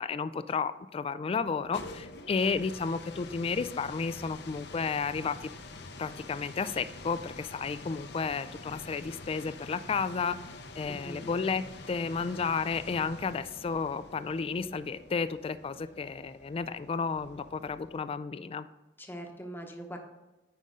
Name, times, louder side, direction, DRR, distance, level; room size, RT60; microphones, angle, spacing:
voice 1, 0.0-5.5 6.0-10.4 10.8-18.7, left 5 dB, 30° left, 13 dB, 0.3 m, -32 dB
sound 1, 1.4-18.2, left 2 dB, 65° left, 0.8 m, -47 dB
voice 2, 10.8-11.3 19.0-20.0, equal, 10° left, 3 dB, 1.0 m, -42 dB
9.3 x 5.3 x 3.6 m, 1.1 s
head